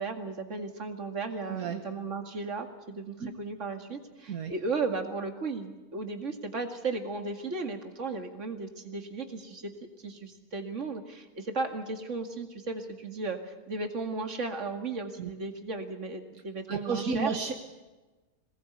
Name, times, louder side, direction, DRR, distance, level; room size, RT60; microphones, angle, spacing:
voice 1, 0.0-9.7 10.0-17.3, right 3 dB, 55° right, 5 dB, 2.5 m, -35 dB
voice 2, 16.7-17.5, right 5 dB, 75° right, 4 dB, 1.7 m, -32 dB
22.5 x 19.0 x 8.1 m, 1.2 s
omnidirectional pair, 1.5 m